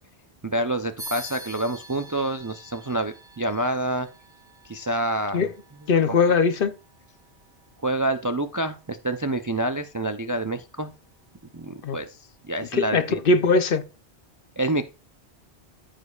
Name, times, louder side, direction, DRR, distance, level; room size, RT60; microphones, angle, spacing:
voice 1, 0.4-4.1 4.6-5.5 6.1-6.2 7.8-10.9 11.5-12.2 12.5-13.2 14.6-14.8, right 1 dB, 25° right, 0.4 m, -27 dB
sound 1, 1.0-10.9, right 1 dB, 5° right, 1.9 m, -47 dB
voice 2, 5.9-6.7 11.8-12.0 12.7-13.8, left 4 dB, 60° left, 0.8 m, -20 dB
13.5 x 5.1 x 2.4 m
omnidirectional pair, 1.1 m